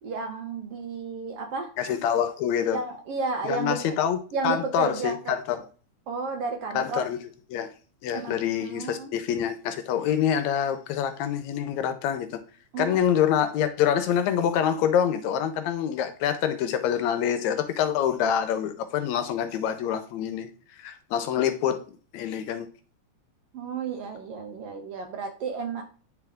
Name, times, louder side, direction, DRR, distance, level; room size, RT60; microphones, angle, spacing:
voice 1, 0.0-1.7 2.7-4.0 4.3-5.4 6.1-7.1 8.1-9.1 12.7-13.0 23.5-25.8, right 4 dB, 70° right, 1.5 m, -32 dB
voice 2, 1.8-2.8 3.4-4.2 4.4-5.6 6.7-7.2 7.5-7.7 8.0-12.3 12.8-20.5 20.8-21.8 22.1-22.7, left 9 dB, 80° left, 1.9 m, -26 dB
9.4 x 3.5 x 3.5 m
omnidirectional pair, 3.3 m